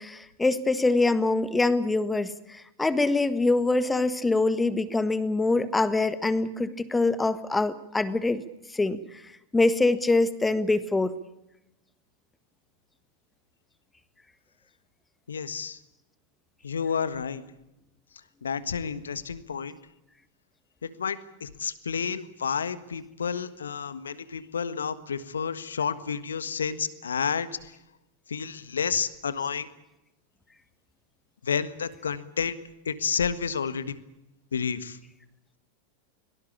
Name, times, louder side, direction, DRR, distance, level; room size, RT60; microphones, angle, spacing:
voice 1, 0.0-8.4 8.7-9.2 9.5-11.1, left 3 dB, 10° left, 14 dB, 1.6 m, -24 dB
voice 2, 15.3-15.8 16.6-17.4 18.4-19.7 20.8-27.5 28.3-29.7 31.4-32.5 32.8-34.0 34.5-35.0, left 6 dB, 75° left, 15 dB, 1.5 m, -30 dB
24.0 x 18.5 x 8.7 m, 0.91 s
figure-of-eight pair, 90°, 0 cm